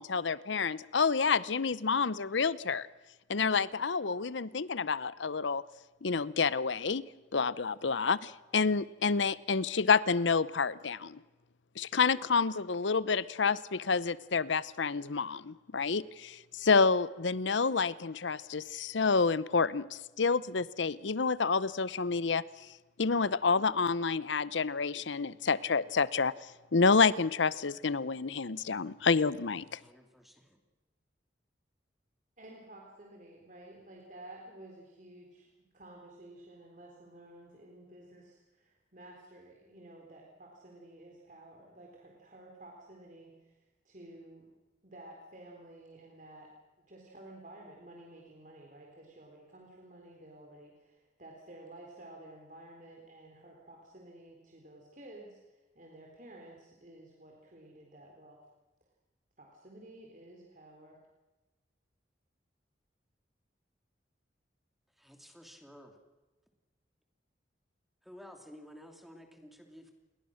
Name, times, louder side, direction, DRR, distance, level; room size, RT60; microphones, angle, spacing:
voice 1, 0.0-2.9 3.3-5.6 6.0-7.1 7.3-11.2 11.8-22.4 23.0-26.3 26.7-29.8, left 5 dB, 80° left, 0.8 m, -29 dB
voice 2, 29.8-30.6 65.0-66.0 68.0-69.9, equal, ahead, 2.8 m, -53 dB
voice 3, 32.4-44.5 44.8-46.5 46.9-58.4 59.4-61.0, right 1 dB, 45° right, 3.8 m, -52 dB
29.0 x 22.5 x 6.5 m
head